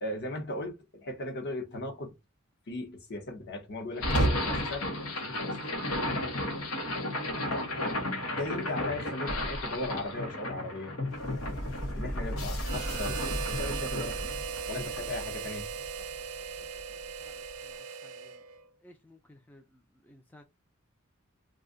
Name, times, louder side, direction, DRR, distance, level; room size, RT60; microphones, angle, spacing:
voice 1, 0.0-2.1 2.7-4.9 5.2-5.6 8.3-10.9 12.0-14.4 14.7-15.7, left 2 dB, 50° left, 0.9 m, -37 dB
sound 1, 4.0-16.2, left 1 dB, 85° left, 1.0 m, -33 dB
Harmonica, 12.6-18.7, right 6 dB, 85° right, 0.5 m, -38 dB
voice 2, 17.2-18.4 18.8-20.4, left 1 dB, 10° left, 0.3 m, -58 dB
2.6 x 2.3 x 3.7 m
head